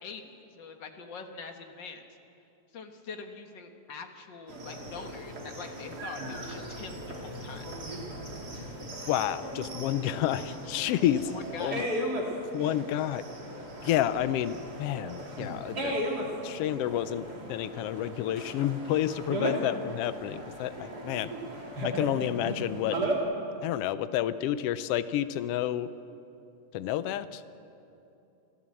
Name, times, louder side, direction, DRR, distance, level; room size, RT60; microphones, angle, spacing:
voice 1, 0.0-2.1 2.7-7.7 11.3-11.8, left 4 dB, 50° left, 5 dB, 1.5 m, -44 dB
sound 1, 4.5-23.2, right 1 dB, 35° right, 3.1 m, -36 dB
voice 2, 9.1-11.3 11.6-11.8 12.5-13.2 13.8-15.9 16.4-21.3 21.8-23.0 23.6-25.9 26.7-27.4, left 12 dB, 85° left, 13 dB, 1.3 m, -30 dB
28.0 x 13.0 x 7.6 m, 2.8 s
omnidirectional pair, 3.4 m